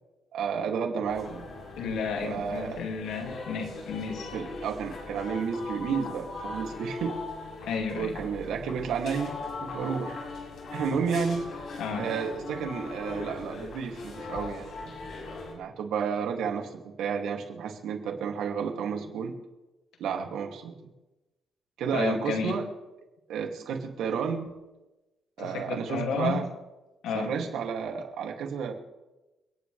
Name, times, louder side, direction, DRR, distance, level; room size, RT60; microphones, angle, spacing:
voice 1, 0.3-1.5 2.2-2.8 4.3-7.2 7.9-10.2 10.7-11.4 12.0-14.9 15.4-19.3 20.0-20.7 21.8-22.7 23.3-24.5 25.4-26.5 27.1-28.7, right 6 dB, 85° right, 2 dB, 2.5 m, -31 dB
sound 1, 1.1-15.5, left 3 dB, 60° left, 6.7 m, -40 dB
voice 2, 1.8-4.3 7.7-8.2 11.8-12.1 21.9-22.6 25.4-26.4 27.0-27.4, left 5 dB, 90° left, 2 dB, 2.4 m, -32 dB
30.0 x 10.0 x 3.4 m, 1.0 s
cardioid pair, 115°, 0 cm